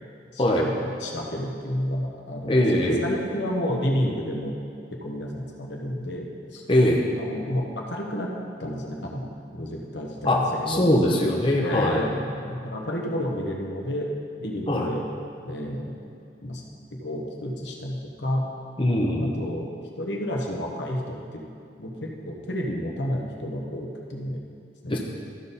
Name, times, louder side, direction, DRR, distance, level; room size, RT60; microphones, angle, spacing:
voice 1, 0.3-4.5 5.0-6.6 7.2-8.3 8.6-10.9 11.1-11.2 11.6-14.1 14.4-15.0 15.4-15.9 16.4-16.6 16.9-18.5 19.2-19.7 20.0-21.4 21.8-24.4 24.8-25.0, equal, 75° left, -1 dB, 1.2 m, -31 dB
voice 2, 2.5-3.1 6.7-7.0 10.2-10.4 10.7-12.0 14.7-14.9 18.8-19.3 24.9-25.0, left 1 dB, 30° left, -1 dB, 0.8 m, -21 dB
13.5 x 5.4 x 4.1 m, 2.4 s
head